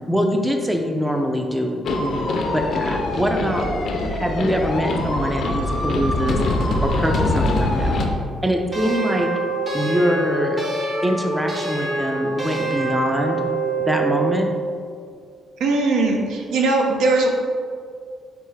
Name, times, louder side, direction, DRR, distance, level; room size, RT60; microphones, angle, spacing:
voice 1, 0.0-3.7 4.2-8.0 8.4-9.3 9.7-10.6 11.0-13.5 13.9-14.5, equal, 10° right, 3 dB, 0.4 m, -23 dB
sound 1, 1.8-8.1, left 2 dB, 55° left, 0.5 m, -23 dB
sound 2, 8.7-14.4, right 3 dB, 30° right, 0.8 m, -25 dB
voice 2, 15.6-17.3, right 3 dB, 85° right, 1 dB, 0.5 m, -19 dB
3.9 x 3.4 x 3.2 m, 2.1 s
cardioid pair, 90°, 0 cm